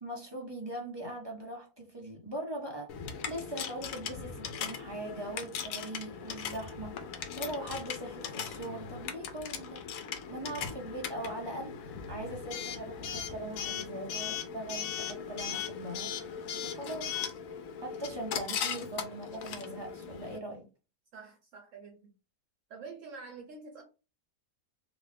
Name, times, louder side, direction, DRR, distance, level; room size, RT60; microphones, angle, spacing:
voice 1, 0.0-7.0 7.4-9.8 10.3-16.1 16.6-17.2 17.8-20.6, right 1 dB, 30° right, 0.5 m, -41 dB
Coin (dropping) / Alarm, 2.9-20.4, left 7 dB, 75° left, 1.0 m, -39 dB
voice 2, 21.1-22.1 22.7-23.8, right 4 dB, 65° right, 0.9 m, -47 dB
2.7 x 2.3 x 3.3 m
omnidirectional pair, 1.5 m